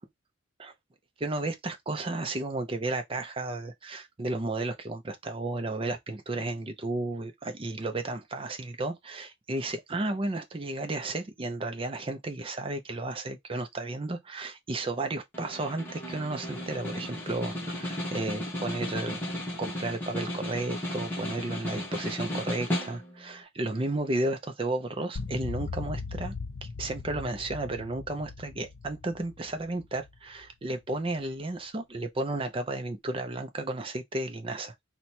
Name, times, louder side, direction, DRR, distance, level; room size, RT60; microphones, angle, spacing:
voice 1, 1.2-19.2 19.6-26.4 26.6-34.7, right 2 dB, 25° right, 0.5 m, -33 dB
Snare drum, 15.3-23.3, left 1 dB, 10° left, 1.0 m, -34 dB
sound 1, 25.2-30.5, left 4 dB, 70° left, 0.6 m, -39 dB
2.9 x 2.2 x 4.1 m
head